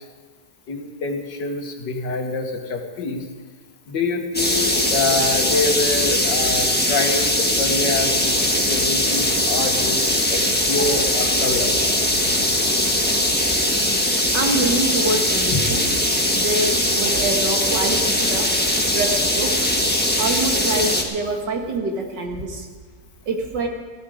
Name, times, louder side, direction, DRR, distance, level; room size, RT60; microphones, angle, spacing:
voice 1, 0.7-3.2 3.9-10.0 10.3-10.4 10.7-11.7 15.5-15.7, left 3 dB, 80° left, 4 dB, 2.1 m, -26 dB
sound 1, 4.3-21.0, left 1 dB, 5° left, 1.2 m, -20 dB
voice 2, 14.3-15.9 16.3-18.5 18.9-19.6 20.2-22.7 23.3-23.7, right 2 dB, 85° right, 2 dB, 2.4 m, -25 dB
15.5 x 12.5 x 5.0 m, 1.5 s
omnidirectional pair, 1.9 m